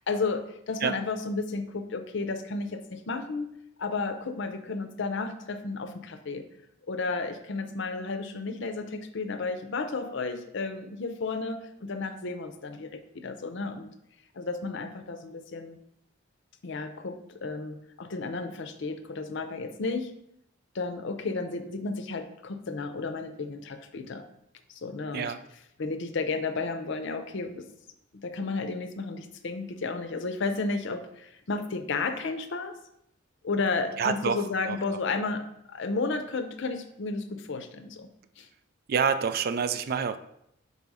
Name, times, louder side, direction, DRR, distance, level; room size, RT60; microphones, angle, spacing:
voice 1, 0.0-3.5 3.8-6.4 6.9-13.9 14.3-15.8 16.6-20.1 20.7-24.2 24.7-25.3 25.8-27.7 28.1-32.7 33.4-38.1 38.4-38.5, left 3 dB, 60° left, 8 dB, 0.6 m, -32 dB
voice 2, 34.0-34.8 38.9-40.2, right 6 dB, 50° right, 11 dB, 0.3 m, -27 dB
4.7 x 4.1 x 5.4 m, 0.78 s
head